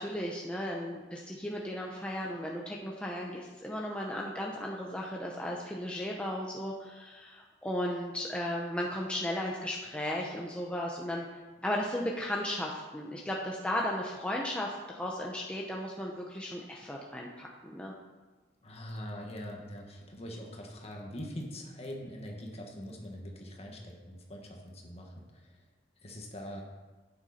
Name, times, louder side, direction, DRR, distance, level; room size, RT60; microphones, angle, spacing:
voice 1, 0.0-11.3 11.6-17.9, left 1 dB, 5° left, -2 dB, 0.8 m, -35 dB
voice 2, 18.6-25.3 26.0-26.6, equal, 35° left, 0 dB, 1.8 m, -43 dB
11.0 x 9.2 x 4.3 m, 1.2 s
head